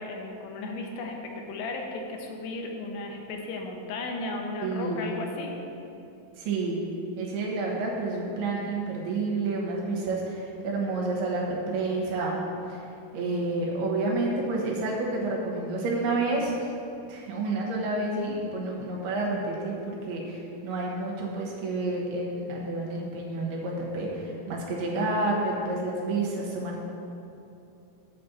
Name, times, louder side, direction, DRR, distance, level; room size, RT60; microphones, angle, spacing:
voice 1, 0.0-5.6, left 2 dB, 90° left, 2 dB, 3.0 m, -35 dB
voice 2, 4.6-5.1 6.4-6.8 7.2-12.4 12.7-12.8 13.1-16.7 17.1-26.8, right 2 dB, 75° right, -3 dB, 3.1 m, -29 dB
8.4 x 4.3 x 7.2 m, 2.7 s
omnidirectional pair, 4.7 m